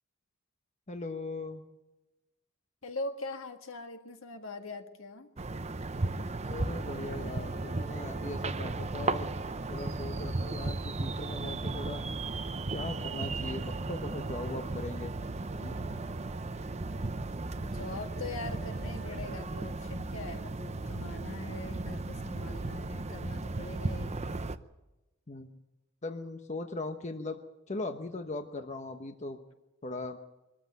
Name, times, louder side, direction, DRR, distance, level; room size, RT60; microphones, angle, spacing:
voice 1, 0.9-1.6 6.4-9.3 9.7-12.0 12.7-15.1 15.6-15.8 25.3-25.5 26.0-27.4 27.7-29.4 29.8-30.2, left 2 dB, 35° left, 6 dB, 1.1 m, -39 dB
voice 2, 2.8-5.3 17.6-24.2, left 2 dB, 70° left, 6 dB, 1.9 m, -42 dB
sound 1, 5.4-24.6, right 2 dB, 35° right, 0.8 m, -35 dB
sound 2, 6.2-19.2, right 7 dB, 5° right, 3.3 m, -55 dB
23.5 x 14.0 x 9.1 m, 1.0 s
head